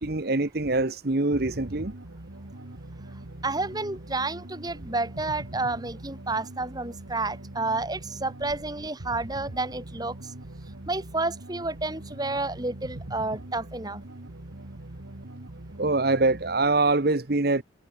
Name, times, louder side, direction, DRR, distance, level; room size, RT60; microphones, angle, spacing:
voice 1, 0.0-1.9 15.8-17.6, right 2 dB, 50° right, 1.1 m, -24 dB
sound 1, 1.3-16.7, right 1 dB, 90° right, 1.8 m, -42 dB
voice 2, 3.4-10.1 10.9-14.0, right 2 dB, 20° right, 1.7 m, -30 dB
head